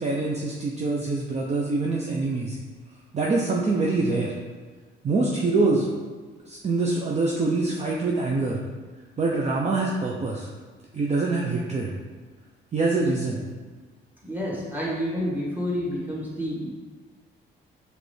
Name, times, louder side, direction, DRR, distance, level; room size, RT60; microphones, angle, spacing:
voice 1, 0.0-2.6 3.1-4.3 5.0-5.9 6.4-8.6 9.2-10.5 10.9-11.9 12.7-13.4, right 3 dB, 35° right, -2 dB, 0.6 m, -25 dB
voice 2, 14.2-16.7, equal, 10° right, -6 dB, 1.5 m, -29 dB
4.9 x 3.2 x 3.2 m, 1.4 s
cardioid pair, 90°, 20 cm